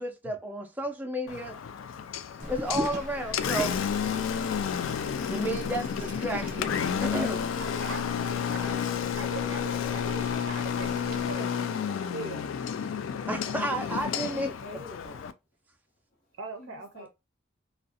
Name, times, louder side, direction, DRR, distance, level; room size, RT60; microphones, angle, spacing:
voice 1, 0.0-1.6 2.5-3.8 5.3-6.7 7.0-7.5 13.3-14.5, right 1 dB, 10° right, 0.4 m, -32 dB
Engine, 1.3-15.3, left 8 dB, 85° left, 0.3 m, -31 dB
sound 1, 2.4-11.4, right 1 dB, 40° right, 0.7 m, -40 dB
voice 2, 7.6-8.8 9.2-12.5 16.4-17.1, right 3 dB, 80° right, 0.4 m, -41 dB
voice 3, 13.7-15.3 16.3-17.1, left 2 dB, 55° left, 0.8 m, -47 dB
2.4 x 2.0 x 2.6 m
head